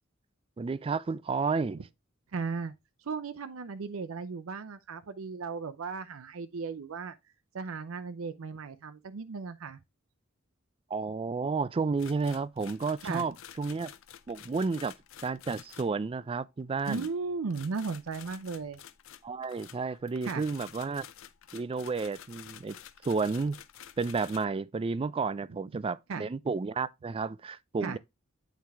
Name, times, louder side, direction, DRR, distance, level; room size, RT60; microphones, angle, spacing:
voice 1, 0.6-1.8 10.9-13.9 14.3-14.9 15.2-17.1 19.2-21.1 21.5-22.8 23.0-23.6 24.0-28.0, right 4 dB, 25° right, 0.3 m, -31 dB
voice 2, 2.3-2.7 3.0-7.1 7.5-9.8 13.0-13.3 16.9-18.8 20.2-20.4 26.1-26.2 27.8-28.0, right 4 dB, 80° right, 0.5 m, -36 dB
sound 1, 12.0-16.0 16.8-24.5, left 10 dB, 70° left, 0.6 m, -50 dB
8.5 x 4.5 x 3.5 m
head